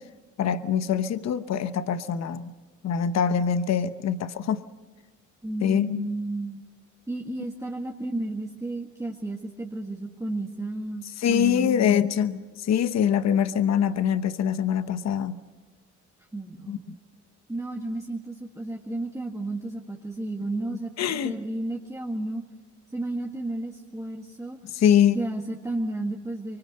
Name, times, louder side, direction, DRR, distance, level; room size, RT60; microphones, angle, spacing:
voice 1, 0.4-2.5 2.8-4.6 5.6-6.1 11.2-15.4 16.7-16.8 21.0-21.3 24.6-25.2, left 8 dB, 60° left, 12 dB, 1.0 m, -24 dB
voice 2, 5.4-6.6 7.1-12.1 16.3-17.0 17.5-22.4 22.9-24.6 25.1-26.6, right 2 dB, 10° right, 0 dB, 1.7 m, -32 dB
25.0 x 24.0 x 6.7 m, 1.3 s
cardioid pair, 90°, 30 cm